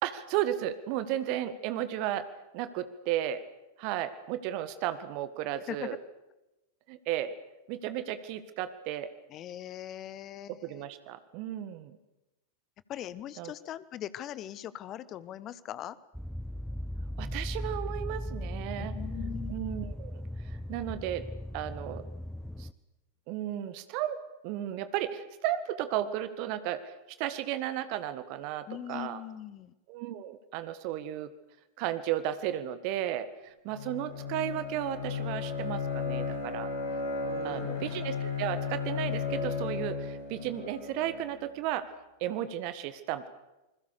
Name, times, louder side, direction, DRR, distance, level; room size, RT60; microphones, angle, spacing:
voice 1, 0.0-2.3 2.5-3.4 3.8-6.0 6.9-7.4 7.7-9.1 10.5-12.0 13.4-13.5 17.2-19.0 19.5-20.2 20.7-21.2 21.5-22.1 22.6-22.7 23.3-24.2 24.4-29.2 29.9-31.3 31.8-36.7 37.4-41.9 42.2-43.3, right 12 dB, 45° right, 13 dB, 1.6 m, -34 dB
voice 2, 9.3-10.8 12.9-16.0 18.8-19.6 28.7-29.7 37.2-37.9, left 11 dB, 35° left, 18 dB, 1.1 m, -41 dB
sound 1, 16.1-22.7, equal, ahead, 1.0 m, -37 dB
Bowed string instrument, 33.7-41.5, left 5 dB, 60° left, 5.9 m, -34 dB
28.0 x 21.0 x 6.8 m, 0.98 s
figure-of-eight pair, 90°, 0 cm